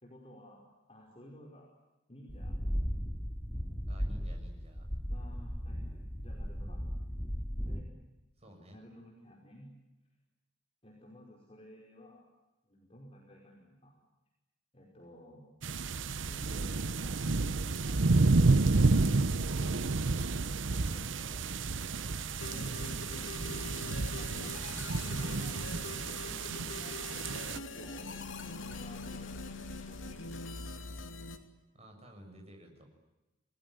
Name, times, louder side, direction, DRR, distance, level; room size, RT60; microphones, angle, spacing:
voice 1, 0.0-1.7 2.1-2.6 5.1-6.8 7.7-7.9 8.7-9.7 10.8-12.3 12.6-14.0 14.7-15.6 16.2-17.2 17.7-18.1 20.8-21.1 23.4-24.5 25.0-25.7 27.0-28.1 28.5-30.5, equal, 30° left, -2 dB, 5.3 m, -54 dB
sound 1, 2.3-7.8, equal, 10° left, 2.4 m, -36 dB
voice 2, 3.9-4.9 8.4-8.8 19.6-20.1 20.9-21.4 21.8-22.4 31.7-32.9, equal, 35° right, 3 dB, 6.9 m, -54 dB
sound 2, 15.6-27.6, right 3 dB, 70° right, 0.9 m, -30 dB
sound 3, 22.4-31.4, left 3 dB, 80° left, 2.8 m, -43 dB
29.0 x 19.0 x 10.0 m, 1.0 s
head